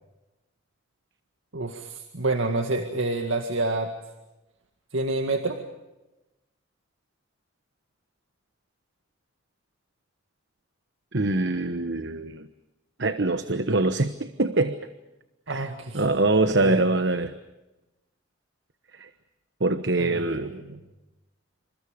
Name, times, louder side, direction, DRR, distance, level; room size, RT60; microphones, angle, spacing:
voice 1, 1.5-3.9 4.9-5.6 15.5-16.0 16.6-16.9 20.0-20.8, right 2 dB, 80° right, 5 dB, 2.0 m, -28 dB
voice 2, 11.1-12.5 13.0-14.8 15.5-15.7 15.9-17.3 19.0-19.1 19.6-20.5, right 2 dB, 60° right, 10 dB, 1.1 m, -24 dB
28.5 x 28.0 x 5.2 m, 1.0 s
head